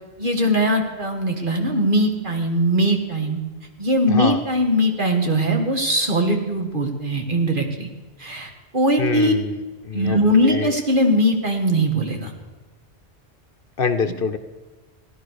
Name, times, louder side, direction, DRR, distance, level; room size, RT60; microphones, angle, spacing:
voice 1, 0.2-3.4 3.8-7.9 8.2-9.3 9.9-12.3 14.1-14.2, equal, 50° right, 3 dB, 2.0 m, -20 dB
voice 2, 4.1-4.4 9.0-10.2 10.4-10.7 13.8-14.4, left 5 dB, 60° left, 11 dB, 1.0 m, -25 dB
15.5 x 11.5 x 6.5 m, 1.2 s
omnidirectional pair, 1.1 m